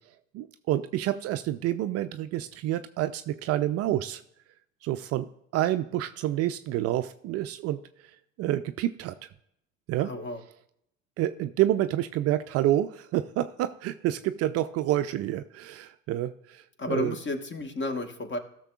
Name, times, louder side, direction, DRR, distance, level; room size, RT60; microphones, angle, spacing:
voice 1, 0.3-4.2 4.8-5.3 5.5-8.1 8.4-9.3 9.9-10.1 11.2-17.2, right 13 dB, 40° right, 10 dB, 0.5 m, -28 dB
voice 2, 10.0-10.4 16.8-18.4, left 2 dB, 30° left, 7 dB, 1.4 m, -32 dB
17.5 x 6.6 x 2.4 m, 0.75 s
figure-of-eight pair, 70°, 39 cm